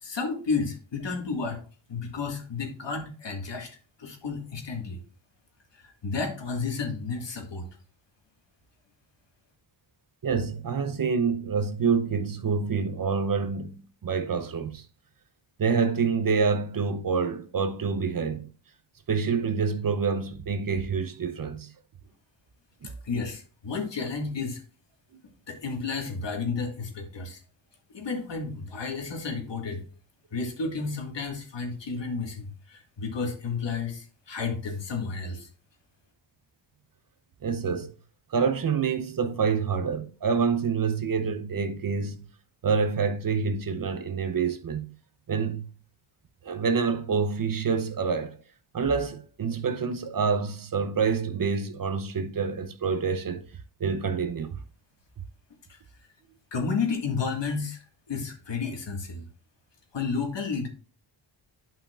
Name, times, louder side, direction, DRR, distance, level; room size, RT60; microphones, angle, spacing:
voice 1, 0.0-1.6 1.9-3.7 4.0-5.0 5.7-7.7 22.8-24.6 25.5-27.4 27.9-29.8 30.3-35.5 55.7-55.8 56.5-59.3 59.9-60.7, left 4 dB, 60° left, 1.9 m, -32 dB
voice 2, 10.2-14.9 15.6-18.5 19.1-21.7 37.4-37.9 38.3-42.3 42.6-44.9 45.3-45.7 46.4-48.4 48.7-53.5 53.8-54.6, right 5 dB, 45° right, 0.7 m, -27 dB
11.0 x 5.5 x 2.4 m
wide cardioid pair, 90°, 47 cm